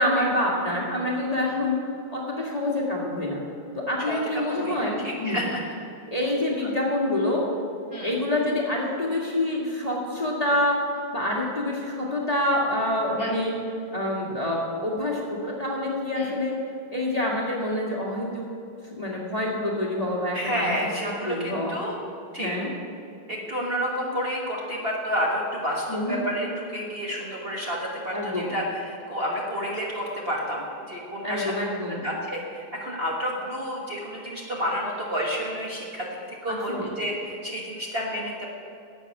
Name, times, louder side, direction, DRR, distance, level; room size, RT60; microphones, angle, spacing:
voice 1, 0.0-1.8 2.1-3.4 3.8-5.5 6.1-7.4 8.0-10.8 11.1-13.5 13.9-16.5 16.9-18.4 19.0-20.8 21.0-21.7 22.4-22.7 25.9-26.2 28.1-28.5 31.2-32.0 36.5-36.9, left 1 dB, 20° left, -4 dB, 1.8 m, -26 dB
voice 2, 4.1-5.6 7.9-8.1 13.2-13.3 16.2-16.3 20.3-21.9 22.3-22.5 23.3-31.5 32.0-36.1 36.4-38.5, equal, 35° right, -3 dB, 1.6 m, -30 dB
11.5 x 8.4 x 7.0 m, 2.7 s
omnidirectional pair, 2.1 m